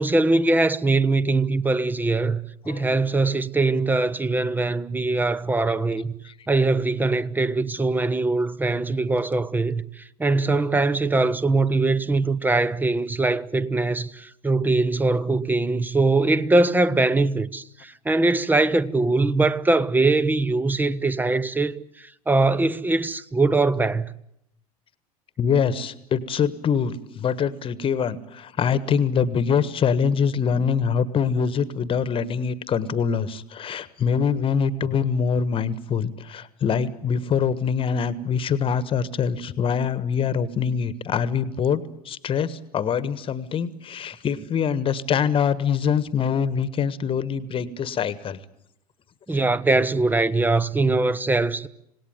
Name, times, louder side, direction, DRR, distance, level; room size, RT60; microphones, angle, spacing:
voice 1, 0.0-2.4 2.6-6.1 6.5-24.1 49.3-51.7, right 3 dB, 10° right, 0.9 m, -22 dB
voice 2, 25.4-41.8 42.0-48.4, left 7 dB, 30° left, 1.4 m, -24 dB
26.5 x 18.5 x 9.2 m
figure-of-eight pair, 75°, 19 cm